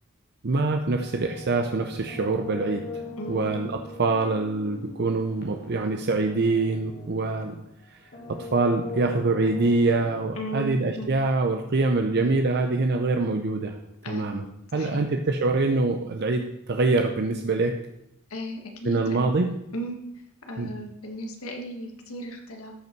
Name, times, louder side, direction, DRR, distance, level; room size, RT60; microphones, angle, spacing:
voice 1, 0.4-2.8 3.3-7.6 7.9-8.0 8.3-13.8 14.1-14.4 14.7-17.7 18.8-19.5 20.6-20.7, right 3 dB, 50° right, 5 dB, 0.6 m, -24 dB
sound 1, 1.0-7.7 8.1-10.3, left 2 dB, 45° left, 1.7 m, -40 dB
voice 2, 3.2-3.5 10.3-11.1 14.0-14.3 14.7-15.0 18.3-19.3 19.7-20.0 20.5-22.7, right 1 dB, 70° left, 3 dB, 1.7 m, -35 dB
13.5 x 5.4 x 4.6 m, 0.81 s
head